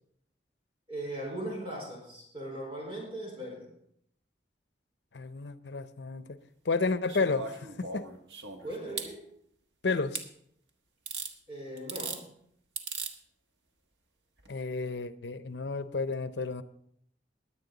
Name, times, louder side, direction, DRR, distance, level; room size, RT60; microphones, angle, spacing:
voice 1, 0.9-3.7 8.6-9.2 11.5-12.2, right 1 dB, 30° right, 4.5 m, -39 dB
voice 2, 5.1-6.4 6.7-8.0 9.8-10.2 14.5-16.6, left 4 dB, 80° left, 0.7 m, -31 dB
sound 1, 7.1-9.1 10.1-10.3 11.1-11.3 11.8-12.2 12.8-13.1 14.4-14.5, right 5 dB, 85° right, 1.4 m, -38 dB
21.0 x 8.6 x 4.0 m
head